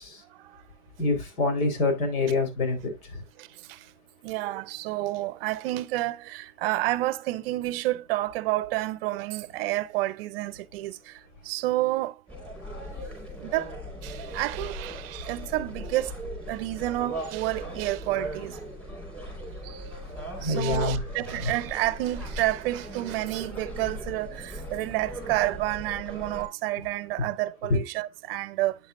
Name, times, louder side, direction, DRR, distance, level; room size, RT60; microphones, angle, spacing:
voice 1, 1.0-2.8 20.4-21.0 21.4-21.5 27.7-27.8, left 3 dB, 70° left, 4.1 m, -25 dB
voice 2, 3.4-3.8 4.2-12.1 13.4-16.2 16.5-18.6 19.6-19.8 20.4-28.8, right 17 dB, 40° right, 0.7 m, -30 dB
sound 1, 12.3-26.5, equal, 5° left, 4.7 m, -38 dB
8.9 x 7.3 x 2.5 m
hypercardioid pair, 145°, 44 cm